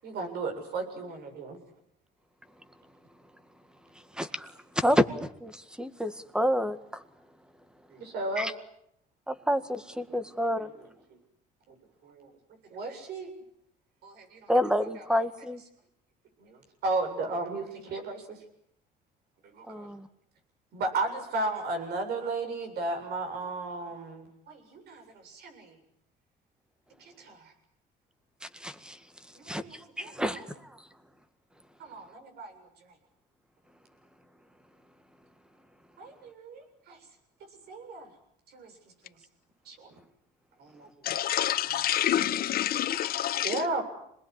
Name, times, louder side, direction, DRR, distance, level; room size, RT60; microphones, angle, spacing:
voice 1, 0.0-1.6 7.9-8.5 10.1-10.2 10.6-10.9 11.7-11.8 12.0-12.3 12.7-13.3 14.0-14.5 16.4-18.4 19.5-19.9 20.7-25.7 27.0-27.5 29.4-30.4 31.8-32.9 36.0-37.0 37.7-38.1 38.5-38.7 39.0-39.1 39.7-39.9 40.6-41.1 43.4-43.8, right 2 dB, 70° right, 7.7 m, -35 dB
voice 2, 4.1-7.0 8.4-8.5 9.3-10.7 14.5-15.6 19.7-20.1 28.4-29.0 29.5-30.5, equal, 5° right, 1.9 m, -29 dB
voice 3, 41.0-43.7, left 11 dB, 60° left, 1.7 m, -27 dB
26.5 x 20.5 x 9.9 m
cardioid pair, 110°, 17 cm